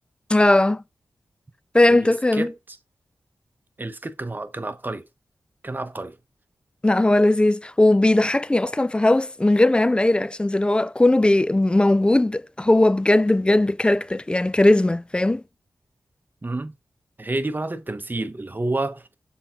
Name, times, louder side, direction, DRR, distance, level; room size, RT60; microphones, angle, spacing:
voice 1, 0.3-0.8 1.7-2.5 6.8-15.4, left 1 dB, 15° left, 0.4 m, -18 dB
voice 2, 1.9-2.5 3.8-5.0 5.6-6.1 16.4-16.7 17.2-19.0, right 2 dB, 30° right, 1.0 m, -29 dB
6.9 x 3.7 x 4.5 m
cardioid pair, 55°, 7 cm